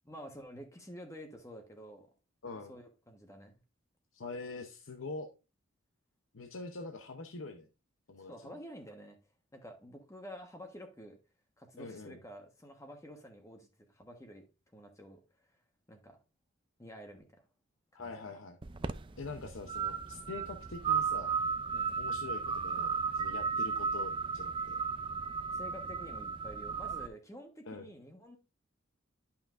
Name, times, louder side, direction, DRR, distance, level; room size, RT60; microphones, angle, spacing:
voice 1, 0.0-2.1 2.5-3.5 8.3-9.2 9.5-11.2 11.6-14.4 14.7-15.2 15.9-16.2 16.8-17.4 17.9-18.1 21.7-22.0 25.5-28.4, equal, 15° left, 1.2 m, -49 dB
voice 2, 4.1-5.3 6.3-7.7 8.1-8.6 11.8-12.2 17.9-18.6 19.2-21.3 22.0-24.8 27.7-27.9, left 3 dB, 75° left, 0.8 m, -44 dB
sound 1, 18.6-27.1, right 5 dB, 25° right, 0.4 m, -35 dB
11.5 x 5.8 x 2.5 m
head